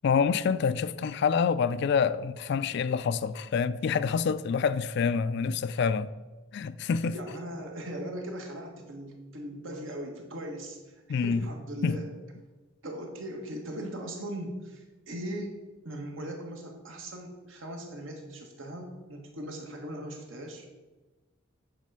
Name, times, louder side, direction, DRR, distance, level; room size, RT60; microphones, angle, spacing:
voice 1, 0.0-6.1 6.5-7.1 11.1-11.4 11.8-12.0, left 6 dB, 55° left, 0.3 m, -27 dB
voice 2, 7.0-12.1 12.8-15.6 15.8-20.7, right 1 dB, 75° right, 1.5 m, -39 dB
8.4 x 3.8 x 6.7 m
head